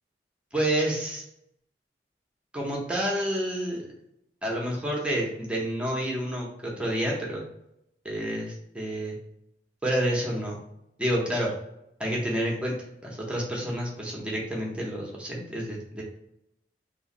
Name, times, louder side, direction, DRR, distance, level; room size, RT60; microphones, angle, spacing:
voice 1, 0.5-1.2 2.5-3.8 4.4-7.4 8.0-9.2 9.8-10.6 11.0-11.5 12.0-12.8 13.0-16.0, right 1 dB, 5° right, -3 dB, 0.7 m, -29 dB
3.1 x 2.5 x 2.9 m, 0.79 s
head